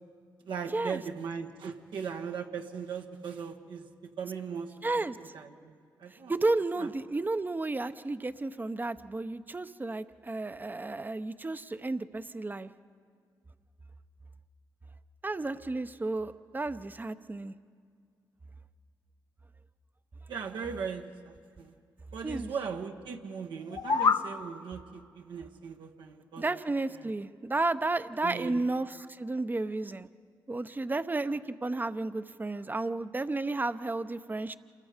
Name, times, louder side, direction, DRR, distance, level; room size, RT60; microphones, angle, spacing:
voice 1, 0.4-6.3 6.8-6.9 20.3-21.7 22.1-26.4 27.0-27.1 28.2-28.6, right 6 dB, 80° right, 3 dB, 1.3 m, -39 dB
voice 2, 4.8-5.3 6.1-12.7 15.2-17.5 22.2-22.5 26.4-30.1 30.5-34.5, right 2 dB, 20° right, 12 dB, 0.8 m, -32 dB
sound 1, 23.6-24.3, left 5 dB, 50° left, 0.8 m, -26 dB
28.0 x 21.5 x 5.1 m, 2.1 s
cardioid pair, 65°, 8 cm